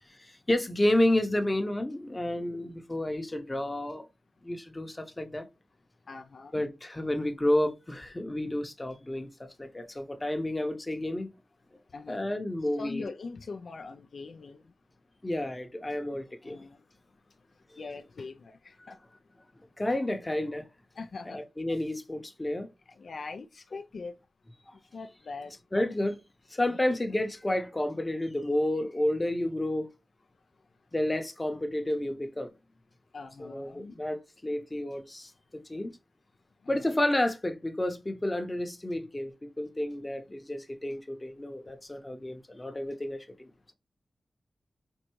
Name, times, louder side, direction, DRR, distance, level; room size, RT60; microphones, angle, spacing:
voice 1, 0.1-4.1 4.4-5.5 6.5-11.3 12.1-13.1 15.2-16.7 17.7-17.9 19.8-20.7 21.3-22.7 24.7-24.8 25.7-26.2 26.5-29.9 30.9-32.5 33.4-35.9 36.7-43.7, left 1 dB, 25° left, 0.7 m, -31 dB
voice 2, 6.1-6.6 11.9-12.3 12.8-14.6 16.4-16.8 17.8-19.0 21.0-21.4 22.9-24.2 24.9-25.5 26.7-26.8 33.1-34.0 36.6-36.9, left 4 dB, 75° left, 0.3 m, -42 dB
4.4 x 2.6 x 3.0 m
cardioid pair, 55°, 0 cm